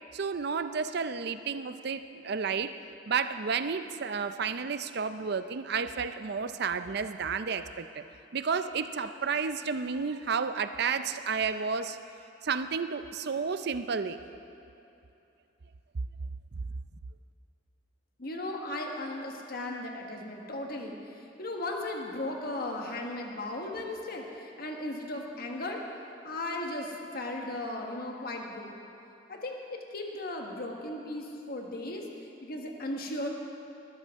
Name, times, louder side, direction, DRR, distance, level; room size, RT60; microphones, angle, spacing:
voice 1, 0.1-2.7 3.1-8.0 8.3-12.0 12.4-14.2, right 5 dB, 60° right, 10 dB, 0.5 m, -31 dB
voice 2, 18.2-25.8 26.2-28.7 29.3-33.3, left 1 dB, 55° left, 1 dB, 1.5 m, -36 dB
19.0 x 13.0 x 3.6 m, 2.8 s
head